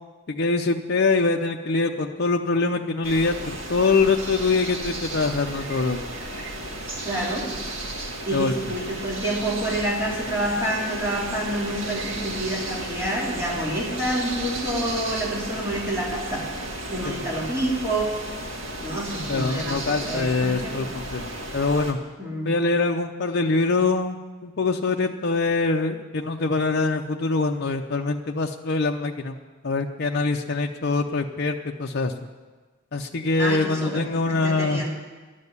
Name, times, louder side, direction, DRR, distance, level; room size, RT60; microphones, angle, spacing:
voice 1, 0.3-6.0 8.3-8.5 17.0-17.2 19.3-21.3 21.5-22.0 22.4-29.3 29.6-32.1 32.9-34.8, left 3 dB, 50° left, 2 dB, 0.6 m, -24 dB
sound 1, 3.0-21.9, right 1 dB, 70° right, 1.9 m, -34 dB
voice 2, 7.0-7.5 8.3-16.5 16.9-18.1 18.8-20.9 22.2-22.5 33.4-34.9, right 1 dB, 15° right, -5 dB, 3.1 m, -28 dB
12.0 x 7.6 x 9.5 m, 1.3 s
head